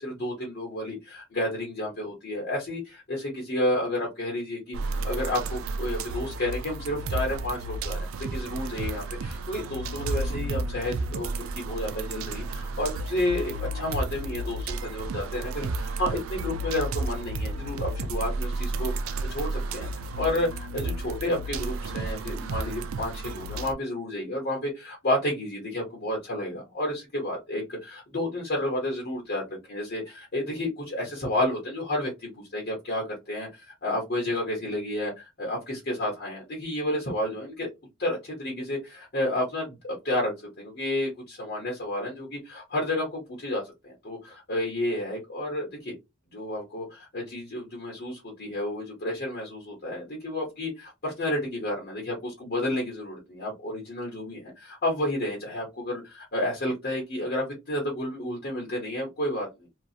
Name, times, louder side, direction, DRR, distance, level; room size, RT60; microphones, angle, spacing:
voice 1, 0.0-37.7 38.0-45.9 46.3-59.7, left 1 dB, 50° left, -2 dB, 1.0 m, -31 dB
sound 1, 4.7-23.7, right 2 dB, 75° right, 0.4 m, -32 dB
2.7 x 2.4 x 2.4 m, 0.23 s
head